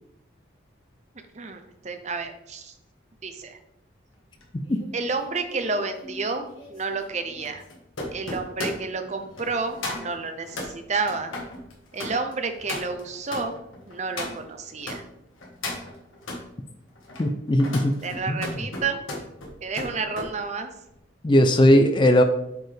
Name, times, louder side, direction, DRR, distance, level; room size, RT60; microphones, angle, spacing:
voice 1, 1.3-2.7 3.2-3.6 4.9-7.6 8.1-11.3 11.9-13.5 13.9-15.0 18.0-19.0 19.6-20.7, right 4 dB, 35° right, 7 dB, 0.6 m, -30 dB
sound 1, 4.4-15.0 15.4-16.4 17.0-20.3 20.7-21.0, left 2 dB, 85° left, 1.5 m, -37 dB
voice 2, 17.2-18.0 18.3-18.5 21.2-22.2, left 1 dB, 25° left, 8 dB, 0.4 m, -19 dB
8.2 x 4.3 x 3.3 m, 0.82 s
head